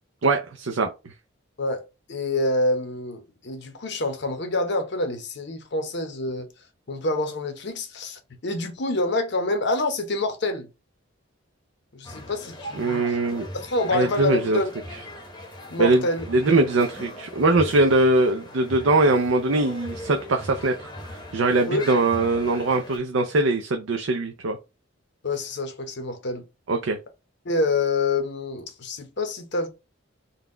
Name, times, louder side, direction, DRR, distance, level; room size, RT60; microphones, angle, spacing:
voice 1, 0.2-1.1 12.7-13.5 13.9-14.6 15.8-24.6 26.7-27.0, right 2 dB, 80° right, 0.5 m, -22 dB
voice 2, 1.6-6.5 6.9-10.7 11.9-13.2 13.5-14.7 15.7-16.2 21.7-21.8 25.2-26.4 27.4-29.7, left 2 dB, 60° left, 0.8 m, -27 dB
sound 1, 12.0-23.0, left 1 dB, 20° left, 0.8 m, -40 dB
4.0 x 2.3 x 3.7 m
head